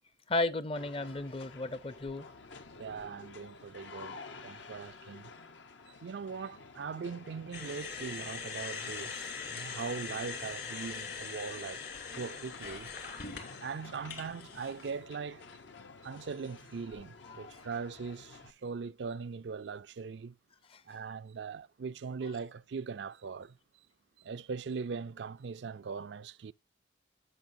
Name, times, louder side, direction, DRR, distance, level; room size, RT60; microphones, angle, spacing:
voice 1, 0.3-2.3 17.3-17.6, left 2 dB, 30° left, 0.6 m, -34 dB
sound 1, 0.8-18.5, left 4 dB, 80° left, 1.0 m, -51 dB
voice 2, 2.8-4.2 4.4-5.3 6.0-11.8 12.2-12.9 13.6-15.4 16.0-20.3 20.9-23.5 24.2-26.5, right 5 dB, 70° right, 0.4 m, -40 dB
sound 2, 7.5-14.9, left 5 dB, 60° left, 2.5 m, -42 dB
16.5 x 5.7 x 2.7 m
head